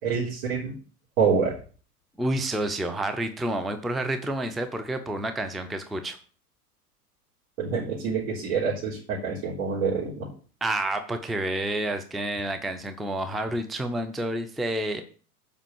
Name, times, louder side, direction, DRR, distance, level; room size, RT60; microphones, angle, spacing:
voice 1, 0.0-0.7 1.2-1.5 7.6-10.3, right 5 dB, 55° right, -7 dB, 4.0 m, -26 dB
voice 2, 2.2-6.2 10.6-15.0, right 1 dB, ahead, 8 dB, 0.5 m, -29 dB
7.3 x 5.4 x 7.2 m, 0.41 s
figure-of-eight pair, 95°, 47 cm